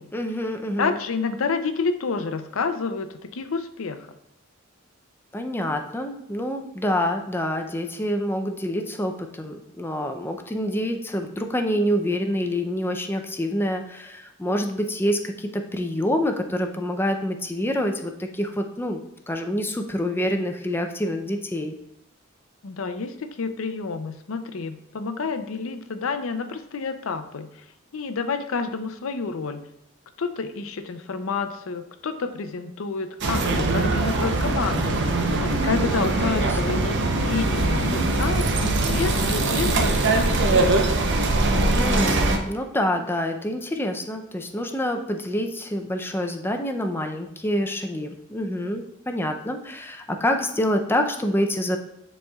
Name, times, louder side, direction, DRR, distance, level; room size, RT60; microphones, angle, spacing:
voice 1, 0.1-1.0 5.3-19.0 19.3-21.7 36.2-36.8 41.5-51.8, equal, 10° left, 4 dB, 0.5 m, -27 dB
voice 2, 0.8-4.1 22.6-27.5 27.9-29.7 30.2-35.0 35.4-40.7, left 4 dB, 75° left, 9 dB, 0.5 m, -29 dB
sound 1, 33.2-42.4, right 2 dB, 60° right, 0.7 m, -22 dB
9.5 x 4.2 x 2.3 m, 0.82 s
head